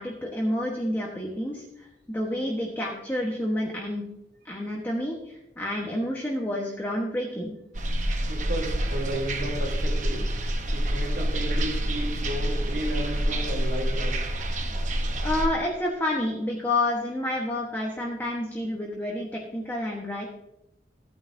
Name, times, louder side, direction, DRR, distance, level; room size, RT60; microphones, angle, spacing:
voice 1, 0.0-4.0 4.4-7.6 15.2-20.3, left 1 dB, 10° left, -3 dB, 1.1 m, -29 dB
sound 1, 7.7-15.5, right 1 dB, 45° right, 0.9 m, -27 dB
voice 2, 8.3-10.3 10.7-14.2, right 1 dB, 70° right, -4 dB, 3.1 m, -33 dB
14.5 x 9.4 x 2.7 m, 0.86 s
head